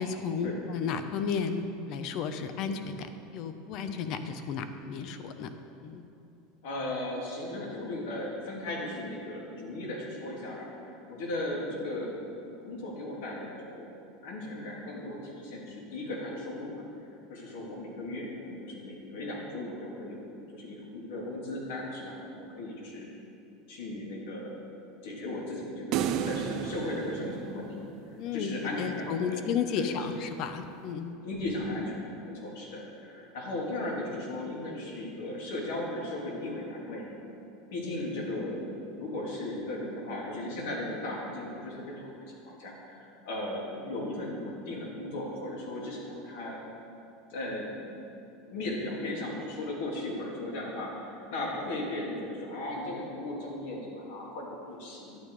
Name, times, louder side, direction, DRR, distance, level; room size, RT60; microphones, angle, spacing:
voice 1, 0.0-3.1 3.3-5.5 5.8-6.0 28.2-31.1, left 6 dB, 50° left, 9 dB, 0.8 m, -33 dB
voice 2, 6.6-12.2 12.6-13.9 14.2-16.8 17.3-20.2 20.5-23.1 23.7-24.6 25.0-27.9 28.3-29.4 29.8-30.1 31.2-37.0 37.7-38.6 38.9-42.1 42.4-46.6 47.3-47.8 48.5-55.2, left 1 dB, 75° left, -3 dB, 3.0 m, -36 dB
sound 1, 25.9-28.3, right 8 dB, 50° right, 0.6 m, -32 dB
11.5 x 9.2 x 4.8 m, 2.8 s
supercardioid pair, 135°, 0 cm